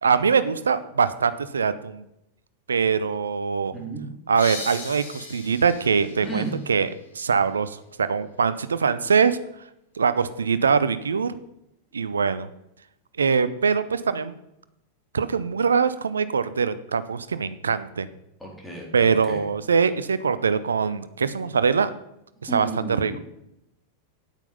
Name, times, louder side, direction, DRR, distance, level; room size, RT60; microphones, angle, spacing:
voice 1, 0.0-2.1 2.7-3.7 4.3-6.9 7.1-9.4 10.0-11.4 11.9-12.5 13.2-14.4 15.1-18.1 18.9-21.9 22.4-23.1, right 5 dB, 70° right, 14 dB, 0.6 m, -23 dB
voice 2, 3.7-4.1 6.2-6.6 18.4-19.4 22.5-23.2, right 2 dB, 5° left, -2 dB, 3.6 m, -33 dB
sound 1, 4.4-7.8, left 2 dB, 75° left, 2.8 m, -39 dB
9.2 x 9.0 x 5.4 m, 0.82 s
figure-of-eight pair, 90°, 0 cm